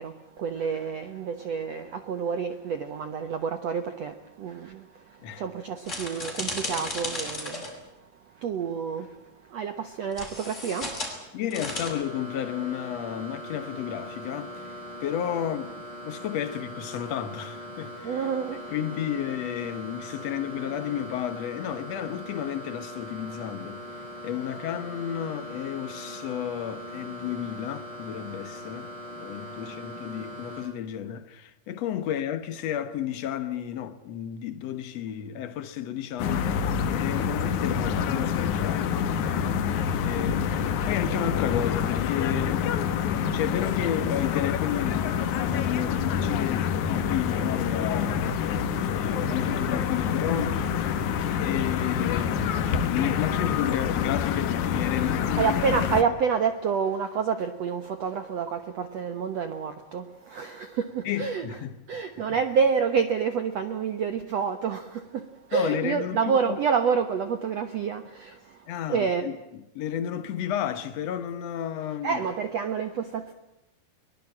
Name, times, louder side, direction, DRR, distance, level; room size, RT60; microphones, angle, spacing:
voice 1, 0.0-7.7 8.3-11.4 18.0-18.7 29.5-29.6 40.0-40.1 55.4-61.5 61.9-69.2 72.0-73.3, right 6 dB, 75° right, 1.5 m, -29 dB
sound 1, 5.9-7.7 10.1-11.1 11.5-11.9, left 2 dB, 15° left, 5.9 m, -34 dB
voice 2, 11.3-15.8 16.0-18.3 18.7-36.6 36.8-38.9 40.0-45.1 45.5-48.9 49.3-50.9 51.4-55.8 61.0-61.8 62.3-62.4 65.5-66.6 68.7-72.2, left 10 dB, 90° left, 1.4 m, -32 dB
sound 2, 11.7-30.6, equal, 25° right, 7.0 m, -41 dB
sound 3, 36.2-56.0, left 7 dB, 65° left, 2.2 m, -27 dB
23.0 x 21.5 x 8.8 m
omnidirectional pair, 4.7 m